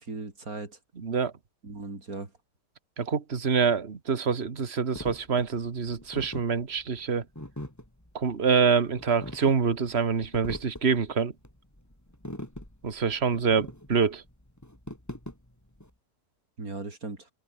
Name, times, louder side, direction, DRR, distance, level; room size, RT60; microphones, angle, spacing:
voice 1, 0.0-0.8 1.6-2.3 16.6-17.3, right 3 dB, 60° right, 4.2 m, -38 dB
voice 2, 1.0-1.3 3.0-7.2 8.1-11.3 12.8-14.2, right 6 dB, 40° right, 1.9 m, -26 dB
sound 1, 4.9-15.9, left 1 dB, 10° left, 4.0 m, -42 dB
open air
omnidirectional pair, 1.8 m